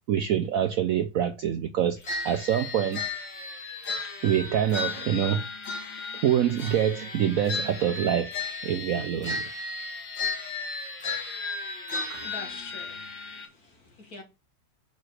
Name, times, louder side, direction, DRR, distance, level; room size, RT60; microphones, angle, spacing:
voice 1, 0.1-2.0 2.2-3.1 4.2-5.4 6.1-8.3 8.6-9.4, right 9 dB, 70° right, 0.8 m, -25 dB
sound 1, 2.0-13.4, left 3 dB, 75° left, 2.7 m, -34 dB
voice 2, 12.1-14.2, left 3 dB, 55° left, 2.2 m, -45 dB
5.3 x 4.8 x 6.3 m
omnidirectional pair, 2.0 m